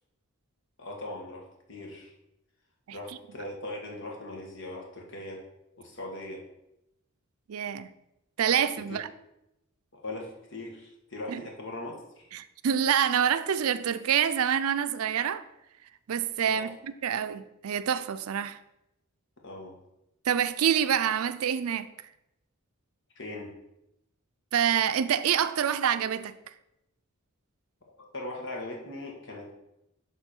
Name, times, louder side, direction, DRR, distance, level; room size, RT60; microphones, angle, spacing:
voice 1, 0.8-1.4 1.7-2.1 2.9-5.4 5.8-6.4 8.8-9.0 9.9-12.3 16.6-16.7 19.4-19.7 23.1-23.5 28.0-29.5, left 2 dB, 60° left, 1.7 m, -40 dB
voice 2, 7.5-7.9 8.4-9.1 11.3-11.4 12.3-15.4 16.1-18.6 20.3-21.9 24.5-26.4, right 8 dB, 85° right, 0.4 m, -26 dB
11.5 x 3.9 x 4.4 m
head